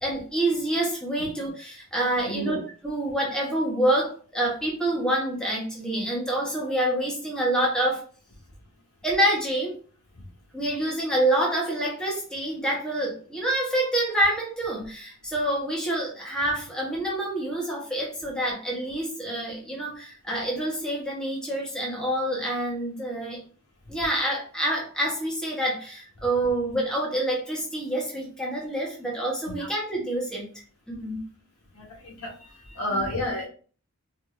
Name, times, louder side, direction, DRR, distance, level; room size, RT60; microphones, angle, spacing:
voice 1, 0.0-8.1 9.0-9.8 10.5-23.4 23.9-30.5 30.9-31.2 32.9-33.1, right 1 dB, 5° left, -3 dB, 1.0 m, -27 dB
voice 2, 31.8-32.3 32.7-33.5, equal, 90° left, -1 dB, 1.6 m, -30 dB
4.5 x 2.6 x 2.5 m, 0.40 s
head